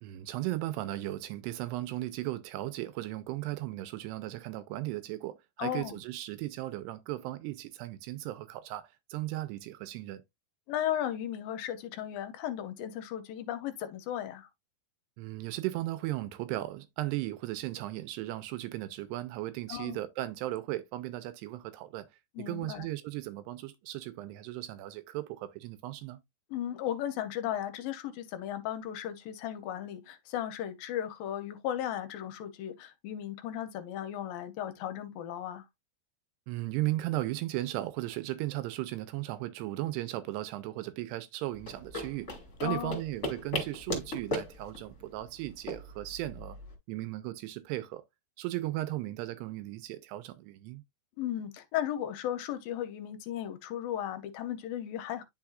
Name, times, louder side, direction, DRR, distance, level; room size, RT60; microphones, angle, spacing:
voice 1, 0.0-10.2 15.2-22.1 22.4-26.2 36.5-42.3 42.6-46.6 46.9-48.0 48.4-50.8, right 16 dB, 90° right, 2.8 m, -36 dB
voice 2, 5.6-6.0 10.7-14.5 19.7-20.0 22.4-22.9 26.5-35.7 42.6-43.0 51.2-55.2, left 11 dB, 75° left, 2.2 m, -35 dB
sound 1, 41.5-46.7, left 1 dB, 20° left, 2.2 m, -38 dB
10.5 x 4.3 x 2.4 m
omnidirectional pair, 4.8 m